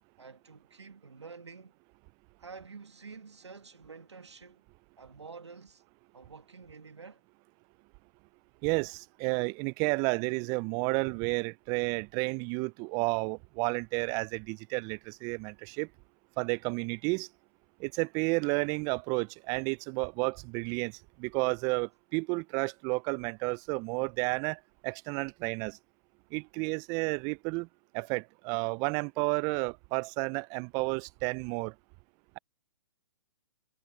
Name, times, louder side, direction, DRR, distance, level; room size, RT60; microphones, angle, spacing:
voice 1, 0.2-1.7 2.4-4.6 5.0-5.8 6.1-7.2, right 5 dB, 85° right, 2.2 m, -49 dB
voice 2, 8.6-15.9 16.4-17.3 17.8-20.9 21.2-25.8 26.3-27.7 27.9-31.7, right 31 dB, 25° right, 0.4 m, -31 dB
hypercardioid pair, 125°, 14 cm